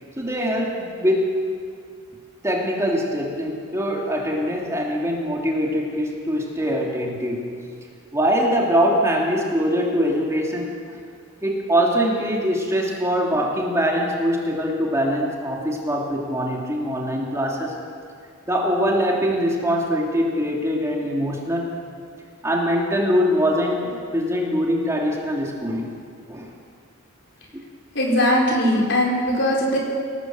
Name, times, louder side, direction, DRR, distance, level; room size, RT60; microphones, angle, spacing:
voice 1, 0.2-1.3 2.4-7.4 8.1-10.7 11.4-17.7 18.5-21.7 22.4-25.9 26.3-26.5 27.5-27.6, equal, 15° right, -2 dB, 3.0 m, -23 dB
voice 2, 27.9-29.8, equal, 60° left, -2 dB, 5.6 m, -20 dB
27.0 x 18.0 x 7.9 m, 2.2 s
head